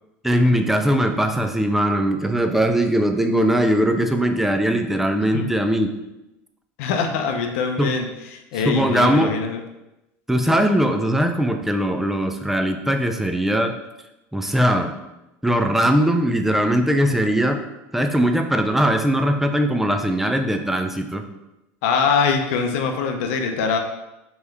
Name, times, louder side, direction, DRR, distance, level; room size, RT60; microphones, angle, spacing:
voice 1, 0.2-5.9 7.8-7.9 8.6-9.3 10.3-13.7 14.3-14.9 15.4-17.6 17.9-21.2, equal, 5° right, 6 dB, 0.4 m, -20 dB
voice 2, 6.8-8.1 8.3-9.6 21.8-23.8, left 5 dB, 75° left, 4 dB, 0.5 m, -23 dB
3.4 x 3.0 x 3.3 m, 0.95 s
supercardioid pair, 110°, 7 cm